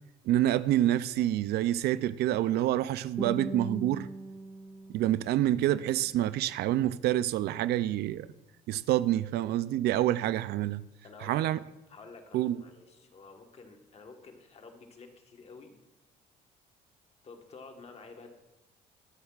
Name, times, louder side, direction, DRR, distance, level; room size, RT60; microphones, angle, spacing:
voice 1, 0.2-4.1 4.9-8.3 8.7-10.8 11.2-11.6 12.3-12.6, right 13 dB, 75° right, 0.4 m, -27 dB
Guitar, 3.2-6.2, right 1 dB, 10° right, 1.4 m, -40 dB
voice 2, 11.0-11.5 11.9-15.8 17.2-18.3, left 4 dB, 40° left, 1.4 m, -50 dB
22.0 x 7.9 x 2.4 m
cardioid pair, 110°, 17 cm